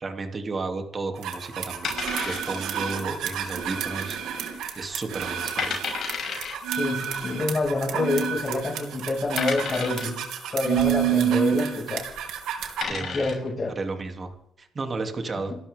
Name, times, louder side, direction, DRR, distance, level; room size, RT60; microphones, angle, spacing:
voice 1, 0.0-1.9 2.2-5.8 12.8-13.4 13.7-14.3 14.6-15.5, right 3 dB, 35° right, 4 dB, 3.3 m, -33 dB
sound 1, 1.2-12.8, right 8 dB, 85° right, 3.0 m, -29 dB
sound 2, 1.8-2.8 3.1-3.2 3.8-4.2 4.6-4.7 5.2-5.3 5.6-6.5 7.6-7.7 8.4-8.5 9.4-10.2 12.0-12.2 12.6-13.5, left 6 dB, 65° left, 6.4 m, -31 dB
voice 2, 6.8-10.2 10.5-12.1 12.9-13.7, left 2 dB, 35° left, 1 dB, 6.9 m, -27 dB
28.0 x 13.0 x 3.9 m, 0.79 s
cardioid pair, 90°, 0 cm